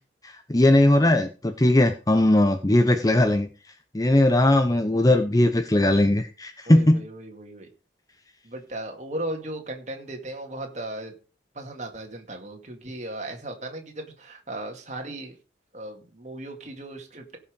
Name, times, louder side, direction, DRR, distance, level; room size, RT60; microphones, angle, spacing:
voice 1, 0.2-3.5 3.9-7.0, left 1 dB, 20° left, 7 dB, 0.7 m, -19 dB
voice 2, 6.7-7.7 8.4-11.1 11.5-15.4 15.7-17.4, right 1 dB, 40° right, 3 dB, 2.2 m, -36 dB
16.5 x 5.7 x 5.2 m, 0.35 s
head